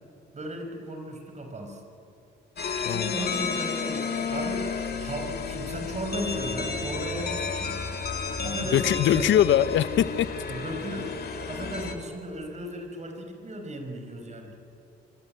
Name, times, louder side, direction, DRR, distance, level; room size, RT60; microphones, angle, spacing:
voice 1, 0.3-1.8 2.8-4.7 5.0-7.8 8.4-9.3 10.5-11.1 11.4-14.6, right 1 dB, 35° right, 4 dB, 5.6 m, -36 dB
sound 1, 2.6-11.9, left 5 dB, 55° left, 3.0 m, -32 dB
voice 2, 8.7-10.3, left 11 dB, 70° left, 15 dB, 0.8 m, -22 dB
24.5 x 24.0 x 9.2 m, 2.7 s
cardioid pair, 90°, 20 cm